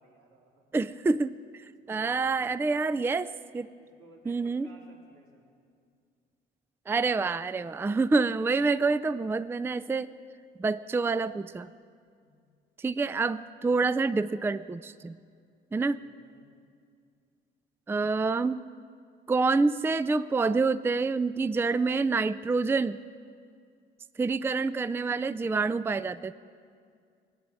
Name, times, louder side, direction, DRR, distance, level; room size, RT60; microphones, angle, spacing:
voice 1, 0.0-0.6 1.7-2.7 3.8-5.6 8.4-8.7 12.1-12.5 15.9-16.5, right 2 dB, 90° right, -3 dB, 3.5 m, -58 dB
voice 2, 0.7-3.7 4.3-4.7 6.9-10.1 10.6-11.7 12.8-15.2 15.7-16.0 17.9-18.6 19.3-23.0 24.2-26.3, right 4 dB, 10° right, 14 dB, 0.3 m, -27 dB
19.5 x 9.7 x 7.6 m, 2.3 s
cardioid pair, 90°, 20 cm